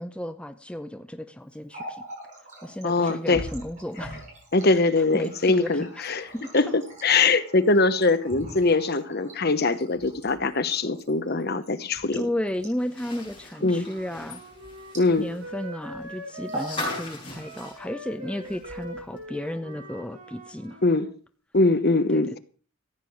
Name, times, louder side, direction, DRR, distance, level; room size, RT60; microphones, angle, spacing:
voice 1, 0.0-2.0 2.6-4.2 4.7-4.8 5.1-5.9 6.3-6.5 12.1-14.4 15.2-20.8 22.1-22.4, left 1 dB, 5° left, 0.6 m, -33 dB
Water tap faucet, 1.5-15.6 15.8-16.0 16.4-16.8 17.1-17.8 18.4-19.2, right 1 dB, 35° right, 7.8 m, -43 dB
voice 2, 2.8-3.4 4.5-6.3 6.5-12.3 13.6-13.9 14.9-15.3 20.8-21.1 21.5-22.4, left 3 dB, 45° left, 0.9 m, -22 dB
sound 1, 12.8-18.8 19.2-19.3 20.6-20.7, left 2 dB, 20° left, 6.9 m, -39 dB
Wind instrument woodwind instrument, 13.7-21.0, equal, 80° right, 7.3 m, -42 dB
15.0 x 9.0 x 6.3 m
head